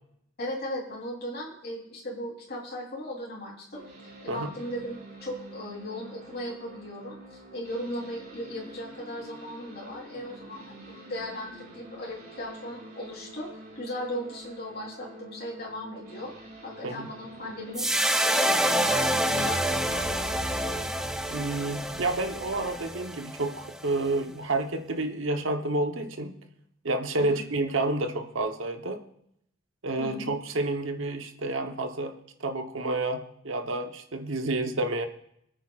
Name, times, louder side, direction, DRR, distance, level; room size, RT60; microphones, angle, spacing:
voice 1, 0.4-3.8 4.2-16.3 16.6-17.9 18.2-20.9 27.2-27.4 30.0-30.3, equal, 55° left, -5 dB, 3.4 m, -37 dB
sound 1, 3.7-19.7, right 1 dB, 50° right, 5.0 m, -47 dB
sound 2, 17.8-24.1, right 1 dB, 5° right, 0.5 m, -27 dB
voice 2, 21.3-26.3 26.8-29.0 29.8-35.1, right 2 dB, 70° right, 6 dB, 1.0 m, -29 dB
26.5 x 9.1 x 2.4 m, 0.75 s
head